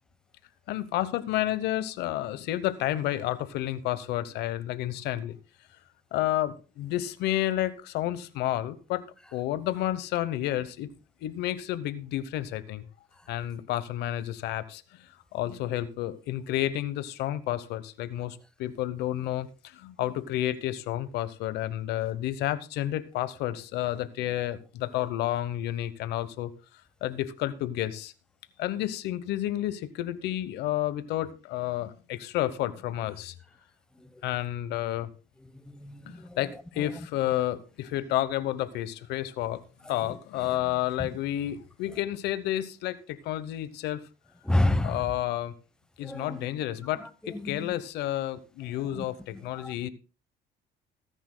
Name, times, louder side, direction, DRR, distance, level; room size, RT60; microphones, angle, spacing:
voice 1, 0.7-5.4 6.1-9.0 9.3-10.9 11.2-12.9 13.3-26.5 27.0-28.1 28.6-33.3 34.2-35.1 36.0-39.6 39.9-44.0 44.8-45.5 46.0-49.9, left 13 dB, 85° left, 0.9 m, -31 dB
voice 2, 35.7-36.4 36.8-37.1 39.9-40.2 41.0-41.1 41.9-42.0 44.4-45.0 46.0-46.4 47.0-47.7 48.9-49.0 49.3-49.7, left 1 dB, 5° left, 0.9 m, -30 dB
20.5 x 10.0 x 2.2 m
cardioid pair, 110°, 17 cm